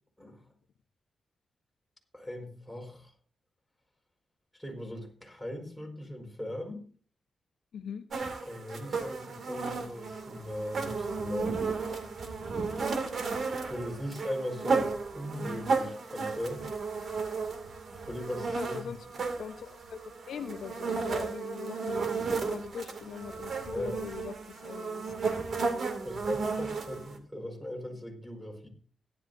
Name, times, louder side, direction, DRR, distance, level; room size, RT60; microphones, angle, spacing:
voice 1, 2.1-3.1 4.5-6.9 8.4-11.6 12.2-12.4 13.7-16.6 18.1-18.9 23.7-24.0 26.0-28.7, left 1 dB, 5° left, 0 dB, 4.9 m, -39 dB
voice 2, 7.7-8.1 18.5-19.1 19.4-22.1 22.5-25.1, left 7 dB, 85° left, 8 dB, 0.9 m, -41 dB
sound 1, 8.1-27.2, right 4 dB, 65° right, 2.3 m, -34 dB
17.0 x 11.5 x 2.7 m, 0.42 s
cardioid pair, 75°, 0 cm